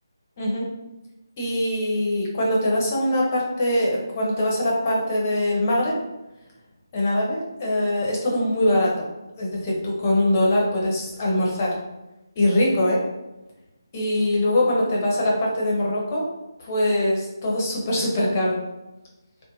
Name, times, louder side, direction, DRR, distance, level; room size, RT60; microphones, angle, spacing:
voice 1, 0.4-0.7 1.4-6.0 6.9-9.1 9.4-11.8 12.4-13.0 13.9-16.3 16.6-18.6, left 1 dB, 30° left, -3 dB, 0.7 m, -22 dB
2.5 x 2.1 x 2.9 m, 0.99 s
figure-of-eight pair, 160°, 2 cm